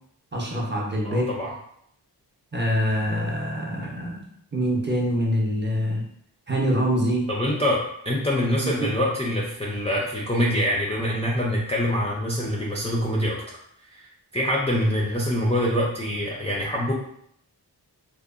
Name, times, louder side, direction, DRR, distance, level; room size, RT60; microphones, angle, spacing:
voice 1, 0.3-1.3 2.5-4.2 4.5-6.0 6.5-7.2 8.8-8.9, equal, 25° right, -3 dB, 0.6 m, -25 dB
voice 2, 1.0-1.5 7.3-13.4 13.9-16.9, equal, 15° left, -4 dB, 0.4 m, -25 dB
2.8 x 2.0 x 2.4 m, 0.70 s
wide cardioid pair, 80°, 41 cm